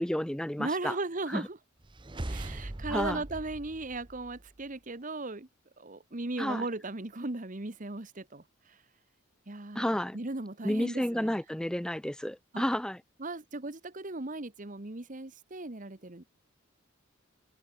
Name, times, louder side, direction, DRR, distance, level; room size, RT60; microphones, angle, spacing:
voice 1, 0.0-1.0 1.3-1.4 2.9-3.2 6.4-6.7 9.8-10.2 10.6-13.0, equal, 5° left, 0.3 m, -31 dB
voice 2, 0.6-1.6 2.3-5.5 5.8-8.8 9.5-9.9 10.1-11.3 12.5-12.6 13.2-16.2, right 2 dB, 35° right, 1.2 m, -37 dB
sound 1, 1.8-4.6, right 1 dB, 20° right, 0.8 m, -40 dB
head